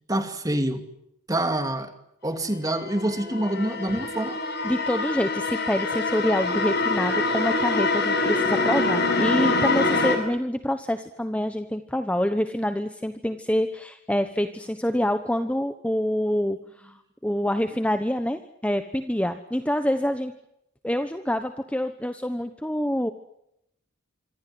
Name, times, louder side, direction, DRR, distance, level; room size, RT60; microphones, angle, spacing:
voice 1, 0.1-0.8 1.3-1.9 2.2-4.4, right 1 dB, 15° right, 7 dB, 2.6 m, -26 dB
sound 1, 2.4-10.2, left 3 dB, 45° left, 7.7 m, -25 dB
voice 2, 4.6-16.6 16.8-16.9 17.2-20.3 20.8-23.1, equal, 5° left, 8 dB, 1.0 m, -26 dB
26.5 x 25.0 x 7.9 m, 0.79 s
head